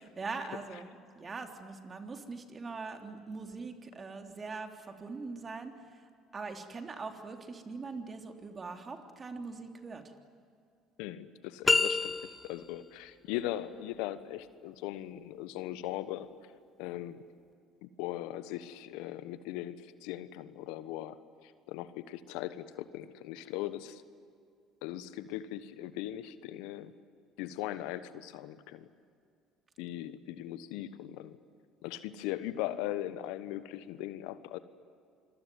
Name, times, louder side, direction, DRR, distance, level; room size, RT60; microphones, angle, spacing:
voice 1, 0.0-6.0 6.3-10.1, right 4 dB, 30° right, 5 dB, 3.4 m, -42 dB
voice 2, 11.0-16.3 16.8-17.3 17.8-21.2 21.4-24.0 24.8-26.9 27.4-28.9 29.8-31.4 31.8-34.6, left 13 dB, 75° left, 13 dB, 1.2 m, -39 dB
sound 1, 11.6-12.8, left 3 dB, 25° left, 1.2 m, -28 dB
27.0 x 22.5 x 9.6 m, 2.3 s
hypercardioid pair, 60°, 0 cm